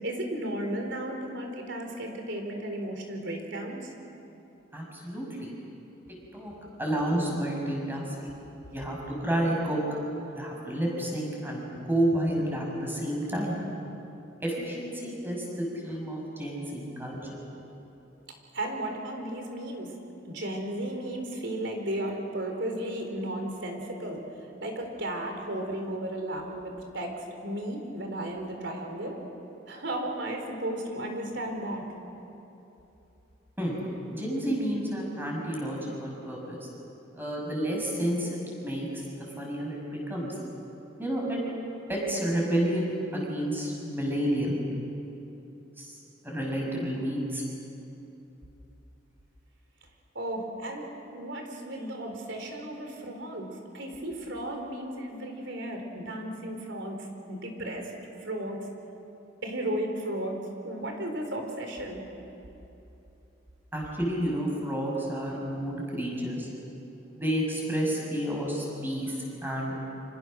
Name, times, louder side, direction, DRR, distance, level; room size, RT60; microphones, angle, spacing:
voice 1, 0.0-3.9 8.7-8.8 18.5-19.9 20.3-29.2 29.7-31.9 50.1-57.9 58.2-58.7 59.4-62.0, right 1 dB, 65° right, 3 dB, 4.2 m, -34 dB
voice 2, 4.7-5.5 6.3-6.5 6.8-8.1 8.7-9.8 10.3-13.6 14.4-17.4 33.6-33.8 34.1-36.7 37.1-39.0 39.4-40.3 41.0-41.4 41.9-44.6 45.8-46.0 46.2-47.4 63.7-66.5 67.2-70.0, right 1 dB, 10° right, -2 dB, 6.0 m, -30 dB
28.5 x 26.5 x 6.5 m, 2.9 s
head